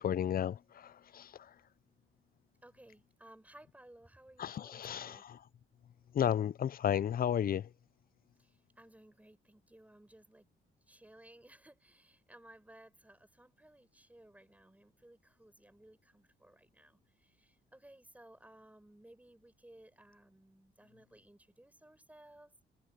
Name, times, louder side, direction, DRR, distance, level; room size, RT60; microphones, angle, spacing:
voice 1, 0.0-1.6 4.4-5.4 6.1-7.7, left 9 dB, 45° left, 0.6 m, -33 dB
voice 2, 2.6-5.3 8.4-10.5 10.9-22.5, right 1 dB, 5° right, 7.4 m, -59 dB
cardioid pair, 90°, 20 cm